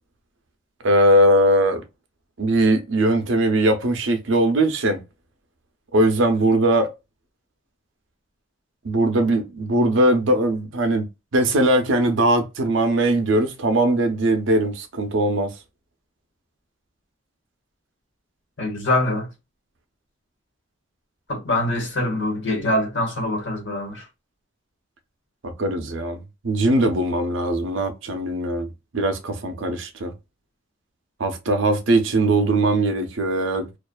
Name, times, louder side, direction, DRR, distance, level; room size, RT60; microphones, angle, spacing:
voice 1, 0.8-1.8 2.4-5.0 5.9-6.9 8.8-15.5 25.4-28.7 28.9-30.1 31.2-33.8, right 1 dB, 80° right, 0.6 m, -20 dB
voice 2, 18.6-19.3 21.3-24.1, left 1 dB, 70° left, 1.1 m, -24 dB
2.5 x 2.4 x 2.2 m
head